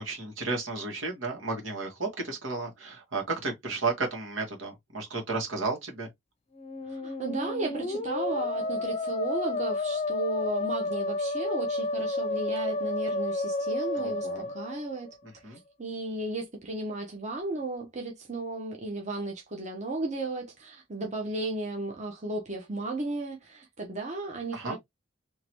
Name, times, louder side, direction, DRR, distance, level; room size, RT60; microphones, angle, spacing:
voice 1, 0.0-6.1 14.0-14.5 15.4-15.6 24.5-24.8, right 3 dB, 80° right, 1.9 m, -33 dB
Musical instrument, 6.5-15.3, left 2 dB, 30° left, 0.6 m, -31 dB
voice 2, 6.9-15.1 15.5-24.8, right 2 dB, 35° right, 1.0 m, -34 dB
3.9 x 3.0 x 3.1 m
head